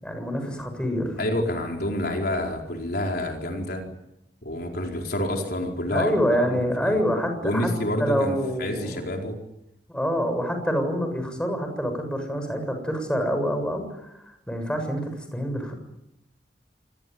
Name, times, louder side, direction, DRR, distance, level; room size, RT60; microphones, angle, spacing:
voice 1, 0.0-1.2 5.9-7.7 8.0-9.0 9.9-15.7, equal, 5° left, 5 dB, 7.1 m, -26 dB
voice 2, 1.2-3.8 4.4-7.0 7.4-9.4, left 1 dB, 60° left, 2 dB, 4.6 m, -28 dB
27.5 x 21.0 x 9.5 m, 0.82 s
head